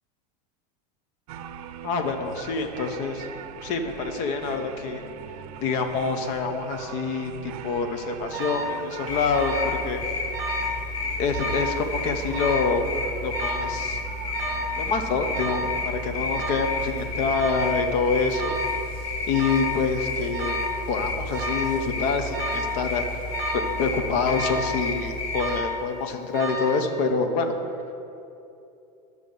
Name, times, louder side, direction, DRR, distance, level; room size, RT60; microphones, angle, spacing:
sound 1, 1.3-17.9, right 8 dB, 75° right, 0.6 m, -42 dB
voice 1, 1.8-3.3 3.6-5.0 5.6-10.0 11.2-12.8 13.2-14.0 14.8-18.6 19.3-20.6 20.9-23.1 23.5-27.5, left 4 dB, 40° left, 6 dB, 0.9 m, -26 dB
Alarm, 8.3-8.8 9.3-9.8 10.1-10.8 11.3-11.7 12.3-12.8 13.3-13.8 14.3-14.8 15.3-15.8 16.3-16.8 17.3-17.8 18.3-18.8 19.3-19.8 20.3-20.8 21.3-21.8 22.3-22.8 23.3-23.8 24.3-24.8 25.3-25.8 26.3-26.8, equal, 20° right, 1.3 m, -31 dB
sound 2, 9.1-25.6, left 3 dB, 55° left, 2.3 m, -31 dB
12.0 x 6.3 x 5.4 m, 2.8 s
supercardioid pair, 170°, 19 cm